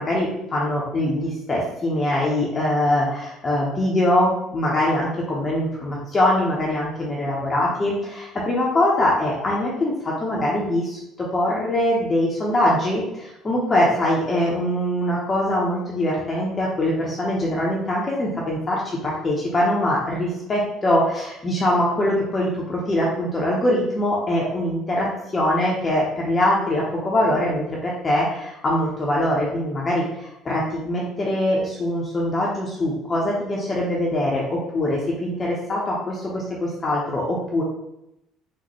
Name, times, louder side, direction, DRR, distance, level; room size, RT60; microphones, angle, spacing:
voice 1, 0.0-37.6, left 1 dB, 30° left, -4 dB, 0.8 m, -23 dB
3.9 x 2.6 x 3.0 m, 0.85 s
figure-of-eight pair, 55°, 0 cm